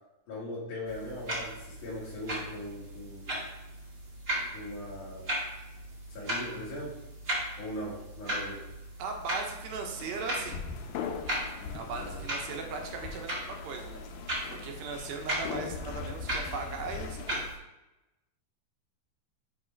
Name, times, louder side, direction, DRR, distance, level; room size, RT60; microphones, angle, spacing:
voice 1, 0.3-3.5 4.5-5.4 6.1-6.9 7.6-8.6 11.6-12.2, left 1 dB, 60° left, -8 dB, 2.8 m, -40 dB
sound 1, 0.8-17.6, right 1 dB, 50° right, 1.0 m, -38 dB
voice 2, 9.0-10.6 11.7-14.0 14.5-17.4, right 4 dB, 75° right, 3 dB, 2.5 m, -38 dB
sound 2, 10.0-17.5, left 6 dB, 80° left, 2.2 m, -41 dB
8.8 x 3.0 x 4.5 m, 0.97 s
omnidirectional pair, 4.6 m